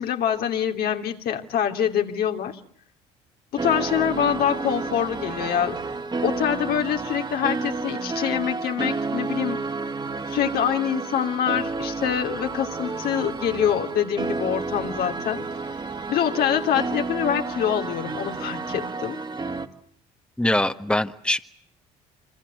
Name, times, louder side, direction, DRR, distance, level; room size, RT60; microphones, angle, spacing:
voice 1, 0.0-2.6 3.5-5.8 6.2-9.6 10.3-15.4 16.1-19.2, left 9 dB, 65° left, 4 dB, 3.0 m, -25 dB
sound 1, 3.6-19.7, right 3 dB, 25° right, 2.5 m, -31 dB
voice 2, 20.4-21.4, left 1 dB, 5° left, 8 dB, 1.7 m, -23 dB
27.0 x 25.5 x 7.9 m, 0.64 s
supercardioid pair, 70°, 17 cm